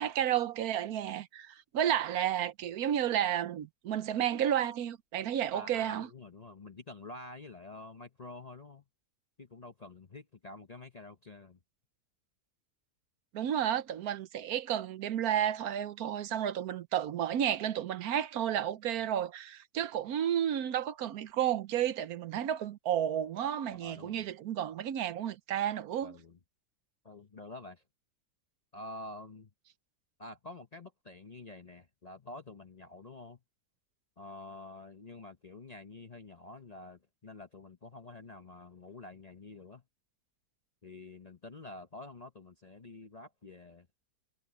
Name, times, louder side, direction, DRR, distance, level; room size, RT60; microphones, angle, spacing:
voice 1, 0.0-6.1 13.3-26.2, right 10 dB, 70° right, 1.2 m, -32 dB
voice 2, 5.5-8.8 9.4-11.6 23.7-24.3 26.0-26.4 27.0-27.8 28.7-29.5 30.2-33.4 34.2-39.8 40.8-43.9, left 2 dB, 35° left, 0.8 m, -48 dB
omnidirectional pair, 1.7 m